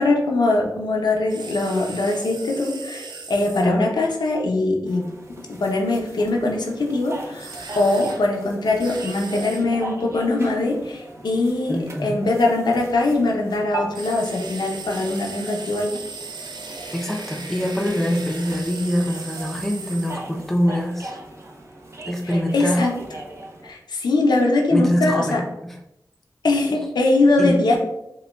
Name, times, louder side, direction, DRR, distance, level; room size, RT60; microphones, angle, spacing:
voice 1, 0.0-5.1 5.6-15.9 22.5-22.9 23.6-25.4 26.4-27.8, left 2 dB, 85° left, 0 dB, 0.6 m, -21 dB
sound 1, 1.3-3.6 7.4-8.2 8.8-9.6 13.9-20.2, right 4 dB, 90° right, 0.4 m, -37 dB
sound 2, 4.9-23.7, right 2 dB, 40° right, 0.7 m, -38 dB
voice 2, 11.7-12.1 16.9-21.2 22.1-22.9 24.7-25.8 27.4-27.8, equal, 5° left, 1 dB, 0.5 m, -24 dB
5.0 x 2.2 x 2.2 m, 0.86 s
cardioid pair, 50°, 7 cm